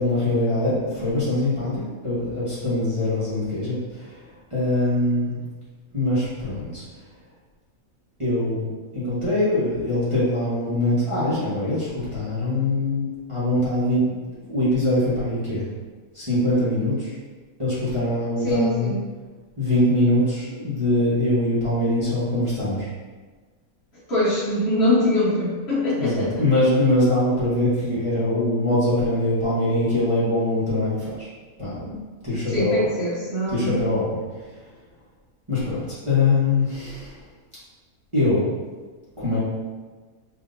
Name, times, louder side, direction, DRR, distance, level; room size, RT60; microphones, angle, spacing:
voice 1, 0.0-4.2 4.5-5.4 5.9-6.8 8.2-8.7 8.9-14.0 14.4-15.6 16.1-17.1 17.6-18.9 19.6-22.9 26.0-31.3 31.6-32.0 32.2-32.9 33.5-34.2 35.5-37.2 38.1-38.5 39.2-39.4, left 1 dB, 25° right, -12 dB, 1.1 m, -23 dB
voice 2, 18.4-19.0 24.1-26.4 32.5-33.8, left 1 dB, 50° left, -10 dB, 1.4 m, -23 dB
5.3 x 2.7 x 2.6 m, 1.4 s
omnidirectional pair, 1.5 m